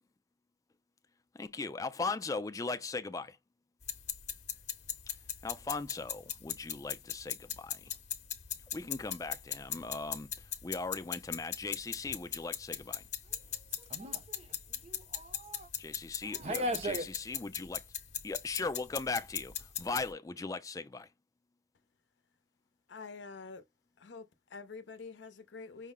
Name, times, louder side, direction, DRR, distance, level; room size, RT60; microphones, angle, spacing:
voice 1, 1.3-3.4 5.1-5.2 5.4-7.9 8.7-13.0 15.8-17.8 18.2-21.1, left 3 dB, 20° left, 0.3 m, -39 dB
sound 1, 3.8-20.1, left 10 dB, 40° left, 0.7 m, -40 dB
voice 2, 13.9-15.7 16.2-17.1, right 1 dB, 35° right, 0.6 m, -38 dB
voice 3, 22.9-23.6 24.0-25.9, left 4 dB, 85° left, 0.6 m, -47 dB
5.6 x 2.0 x 3.6 m
head